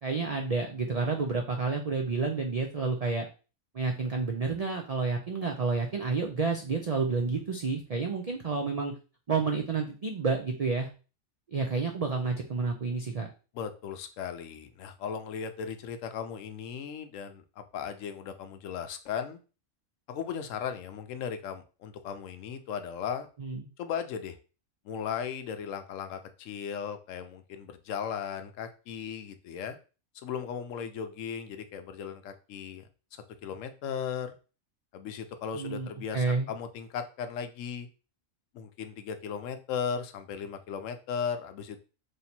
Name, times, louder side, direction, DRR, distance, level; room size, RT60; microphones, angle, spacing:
voice 1, 0.0-3.3 3.7-8.9 9.3-10.9 11.5-13.3 23.4-23.7 35.5-36.5, right 4 dB, 80° right, 2 dB, 0.3 m, -30 dB
voice 2, 13.5-19.4 20.1-23.3 23.8-24.4 24.8-29.8 30.2-32.8 33.4-34.4 34.9-37.9 38.5-41.8, left 7 dB, 75° left, 8 dB, 0.9 m, -37 dB
3.2 x 2.8 x 4.2 m, 0.34 s
omnidirectional pair, 1.4 m